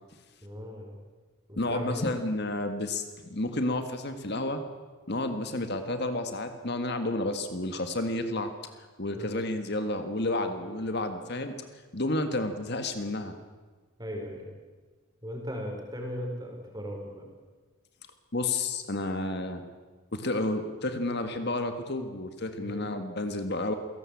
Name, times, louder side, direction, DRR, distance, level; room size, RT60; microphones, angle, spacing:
voice 1, 0.4-0.9 1.5-2.1 9.1-9.4 14.0-14.5 15.2-17.3 22.6-22.9, equal, 20° right, 1 dB, 5.0 m, -38 dB
voice 2, 1.6-4.6 5.1-8.5 8.8-11.5 11.9-13.4 18.3-19.6 20.1-23.7, left 2 dB, 50° left, 7 dB, 1.8 m, -31 dB
27.5 x 18.0 x 8.6 m, 1.4 s
head